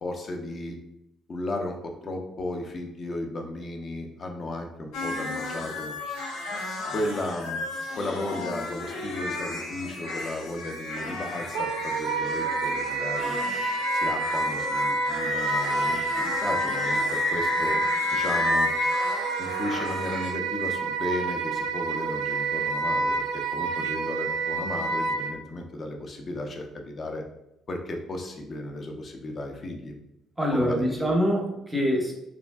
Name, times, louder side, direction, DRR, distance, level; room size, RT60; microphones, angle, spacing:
voice 1, 0.0-0.8 1.3-5.9 6.9-7.6 8.0-13.4 13.9-17.8 18.1-18.7 19.4-27.2 27.7-29.9 30.5-31.1, left 1 dB, 35° left, 3 dB, 0.4 m, -34 dB
sound 1, 4.9-20.3, left 2 dB, 80° left, 0.6 m, -32 dB
Wind instrument woodwind instrument, 11.5-25.3, right 3 dB, 85° right, 0.3 m, -28 dB
voice 2, 30.4-32.1, equal, 5° right, -1 dB, 0.6 m, -24 dB
3.0 x 2.5 x 2.2 m, 0.86 s
cardioid pair, 130°, 0 cm